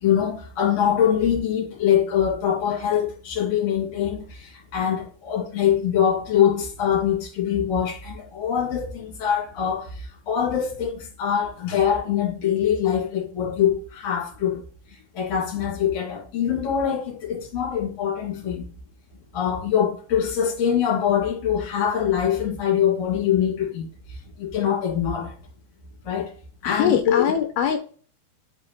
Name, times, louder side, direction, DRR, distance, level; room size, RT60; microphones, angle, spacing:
voice 1, 0.0-14.6 15.1-18.6 19.3-23.9 24.4-25.3 26.0-26.3 26.6-27.3, left 9 dB, 45° left, 2.8 m, -23 dB
voice 2, 26.7-27.8, left 8 dB, 80° left, 2.3 m, -22 dB
7.9 x 4.9 x 3.0 m
omnidirectional pair, 5.0 m